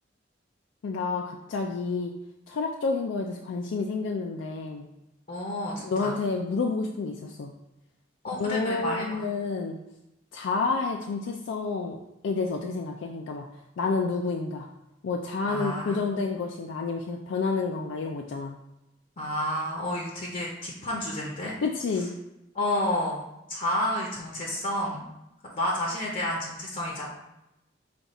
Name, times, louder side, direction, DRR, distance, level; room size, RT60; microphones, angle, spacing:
voice 1, 0.8-2.1 2.5-4.9 5.8-7.5 8.4-9.8 10.3-13.5 13.8-14.7 15.0-18.6 21.6-22.1, left 4 dB, 80° left, 2 dB, 0.4 m, -29 dB
voice 2, 5.3-6.1 8.2-9.2 15.4-16.0 19.2-21.6 22.5-25.0 25.5-27.1, left 1 dB, 45° left, -2 dB, 0.6 m, -30 dB
5.1 x 2.3 x 4.0 m, 0.91 s
head